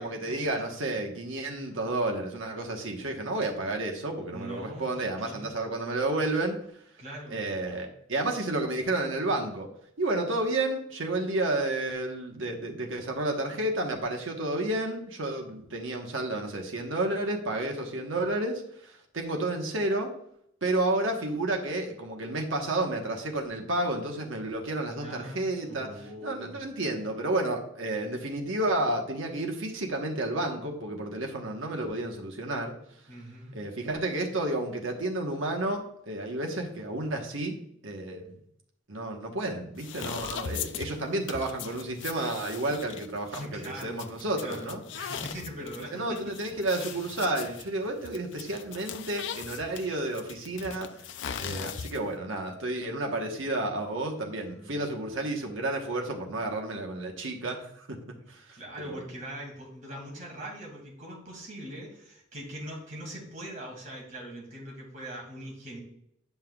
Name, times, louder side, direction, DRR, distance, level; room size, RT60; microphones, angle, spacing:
voice 1, 0.0-6.6 7.3-9.7 10.0-20.1 20.6-32.7 33.5-37.6 37.8-38.4 38.9-44.8 45.9-50.9 51.4-58.0 58.3-58.6 58.8-59.0, right 2 dB, 85° right, 2 dB, 1.2 m, -31 dB
voice 2, 4.3-5.6 7.0-7.4 24.9-26.6 33.1-33.6 43.3-44.1 44.4-46.2 46.7-47.0 54.4-54.9 58.5-65.8, right 1 dB, 40° right, -2 dB, 2.3 m, -42 dB
sound 1, 39.8-52.2, left 7 dB, 70° left, 0.4 m, -40 dB
9.4 x 5.6 x 2.3 m, 0.71 s
head